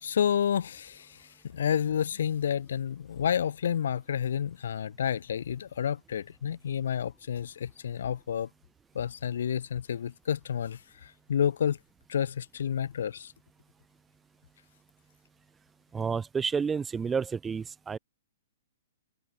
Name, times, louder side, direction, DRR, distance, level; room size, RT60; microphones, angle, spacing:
voice 1, 0.0-8.5 8.9-11.8 12.1-13.3, left 8 dB, 60° left, 1.8 m, -30 dB
voice 2, 15.9-18.0, right 6 dB, 15° right, 1.4 m, -30 dB
figure-of-eight pair, 115°, 0 cm